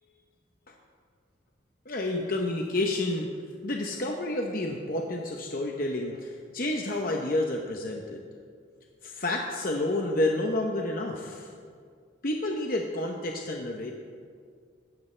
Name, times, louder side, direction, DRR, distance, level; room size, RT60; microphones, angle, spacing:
voice 1, 1.9-3.3 3.6-8.2 9.0-11.5 12.2-13.9, left 2 dB, 45° left, 1 dB, 0.8 m, -30 dB
16.5 x 12.0 x 3.3 m, 2.1 s
head